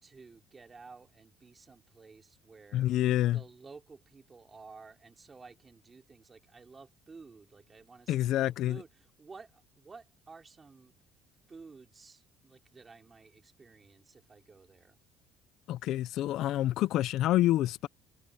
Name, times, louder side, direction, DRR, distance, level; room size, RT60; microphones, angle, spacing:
voice 1, 0.0-2.9 3.3-10.9 11.5-15.0, right 4 dB, 25° right, 3.0 m, -53 dB
voice 2, 2.7-3.4 8.1-8.8 15.7-17.9, left 14 dB, 65° left, 0.6 m, -27 dB
cardioid pair, 110°, 0 cm